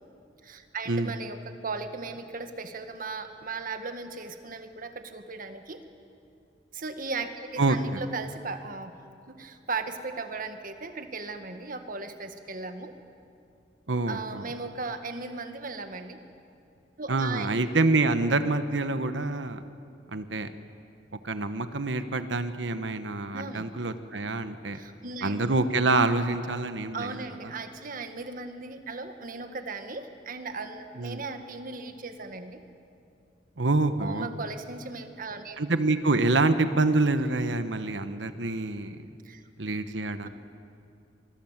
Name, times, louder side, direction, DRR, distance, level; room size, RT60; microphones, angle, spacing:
voice 1, 0.4-5.8 6.7-8.9 9.3-12.9 14.1-16.2 17.0-17.5 23.3-23.7 24.7-25.4 26.9-32.6 34.0-35.6 39.2-39.4, right 4 dB, 50° right, 7 dB, 1.6 m, -37 dB
voice 2, 7.6-8.0 13.9-14.5 17.1-19.6 20.1-20.5 21.2-24.8 25.2-27.2 31.0-31.2 33.6-34.3 35.6-39.0 39.6-40.3, right 2 dB, 90° right, 10 dB, 1.1 m, -26 dB
24.5 x 22.0 x 7.4 m, 2.5 s
head